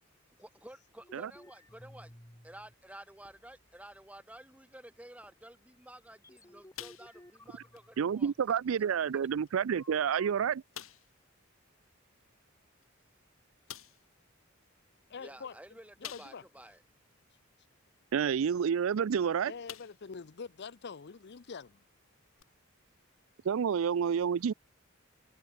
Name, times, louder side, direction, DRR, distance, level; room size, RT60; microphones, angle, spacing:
voice 1, 0.4-2.1 2.4-8.9 9.1-9.2 15.2-16.8, right 1 dB, 5° right, 3.5 m, -52 dB
sound 1, 1.0-2.8 3.1-4.0 4.5-4.6 5.2-5.4 6.1-8.7 9.8-10.3, left 1 dB, 15° left, 3.8 m, -57 dB
sound 2, 6.7-7.4 7.7-7.9 8.5-8.6 9.4-9.5 9.9-10.0 10.7-11.2 12.8-12.9 13.7-14.1 16.0-16.6 17.1-17.2 19.0-19.2 19.7-20.2 20.6-20.7 22.4-22.5, left 11 dB, 80° left, 3.8 m, -47 dB
voice 2, 8.0-10.6 18.1-19.5 23.4-24.5, right 7 dB, 75° right, 0.4 m, -29 dB
voice 3, 15.1-15.6 16.0-16.4 19.4-21.8, left 5 dB, 55° left, 0.6 m, -45 dB
head